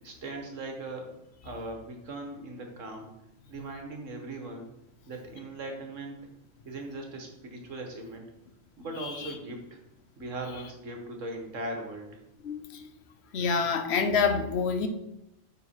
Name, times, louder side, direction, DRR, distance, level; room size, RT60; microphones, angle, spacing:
voice 1, 0.0-1.1 1.4-3.1 3.5-4.7 5.1-6.2 6.6-8.2 8.8-9.8 10.2-12.2, right 2 dB, 70° right, 3 dB, 1.6 m, -39 dB
voice 2, 12.4-12.9 13.3-14.9, left 5 dB, 60° left, 8 dB, 0.9 m, -27 dB
8.8 x 4.0 x 4.4 m, 0.85 s
omnidirectional pair, 1.4 m